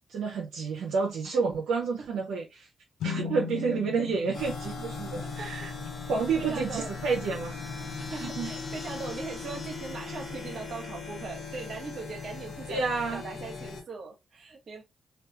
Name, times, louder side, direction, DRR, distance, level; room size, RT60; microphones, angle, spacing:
voice 1, 0.1-2.7 3.0-5.7 6.1-7.5 8.1-8.5 12.7-13.2, right 4 dB, 80° right, 0.5 m, -30 dB
sound 1, 3.0-6.6, left 6 dB, 80° left, 0.4 m, -39 dB
sound 2, 3.8-10.6, left 4 dB, ahead, 1.2 m, -45 dB
sound 3, 4.3-13.8, left 4 dB, 60° left, 0.9 m, -39 dB
voice 2, 6.4-7.2 8.0-14.8, right 4 dB, 60° right, 0.9 m, -40 dB
2.3 x 2.3 x 2.7 m
supercardioid pair, 50°, 0 cm